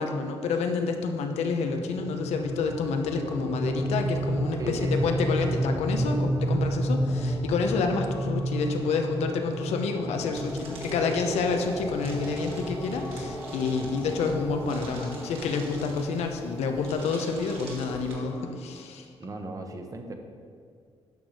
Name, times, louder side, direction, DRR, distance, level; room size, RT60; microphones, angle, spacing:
voice 1, 0.0-19.1, left 4 dB, 90° left, 5 dB, 0.9 m, -29 dB
sound 1, 1.0-18.6, left 1 dB, 25° left, 1.0 m, -44 dB
sound 2, 1.9-16.8, right 1 dB, 5° right, 0.6 m, -31 dB
voice 2, 4.6-5.2 19.2-20.1, right 2 dB, 30° right, 4 dB, 1.1 m, -37 dB
sound 3, 10.3-18.1, right 2 dB, 60° right, 2.5 m, -45 dB
10.5 x 6.3 x 4.9 m, 2.1 s
cardioid pair, 105°, 11 cm